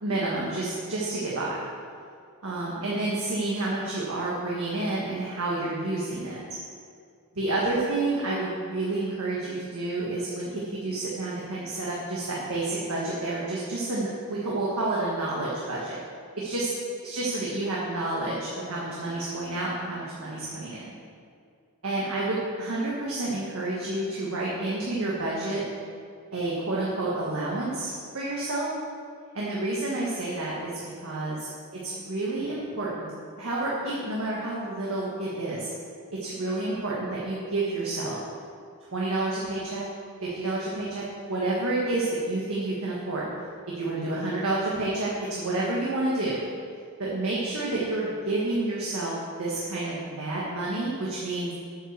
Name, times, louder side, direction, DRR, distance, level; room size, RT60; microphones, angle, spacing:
voice 1, 0.0-1.6 2.4-6.6 7.3-16.0 16.4-16.7 17.0-20.9 21.8-25.6 26.3-28.7 29.3-30.7 31.0-31.3 31.9-33.1 33.4-35.7 36.2-38.2 38.9-39.8 40.2-43.2 43.8-46.4 47.0-51.5, right 2 dB, 70° right, -6 dB, 1.5 m, -29 dB
8.5 x 5.7 x 6.7 m, 2.2 s
head